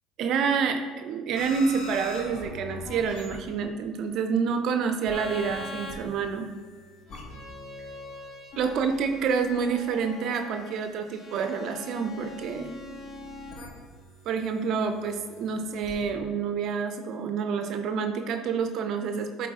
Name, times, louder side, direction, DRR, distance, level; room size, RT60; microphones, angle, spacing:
voice 1, 0.2-6.5 8.6-12.7 14.3-19.5, right 6 dB, 60° right, 7 dB, 0.5 m, -28 dB
sound 1, 1.3-3.9 5.1-16.1, left 2 dB, 60° left, 1.5 m, -42 dB
8.2 x 4.0 x 3.7 m, 1.4 s
hypercardioid pair, 75°, 0 cm